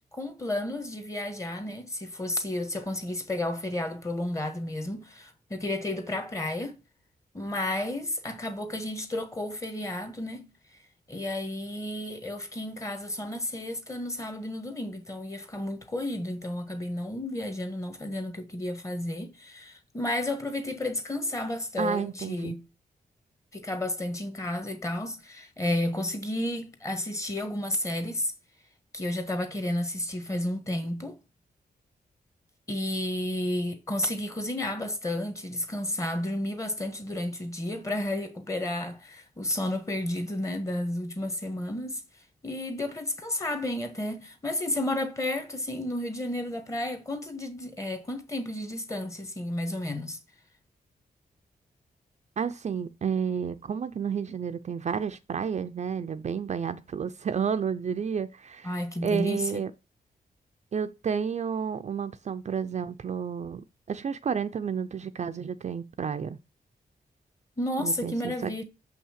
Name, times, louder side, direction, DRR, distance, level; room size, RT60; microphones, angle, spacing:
voice 1, 0.1-6.8 7.3-10.5 11.1-22.6 23.5-28.3 28.9-31.2 32.7-42.0 42.4-50.2 58.6-59.5 67.6-68.6, left 1 dB, 20° left, 1.5 m, -32 dB
voice 2, 21.8-22.6 52.4-59.7 60.7-66.4 67.8-68.6, right 7 dB, 45° right, 0.6 m, -31 dB
7.1 x 5.7 x 7.4 m
wide cardioid pair, 170°, 16 cm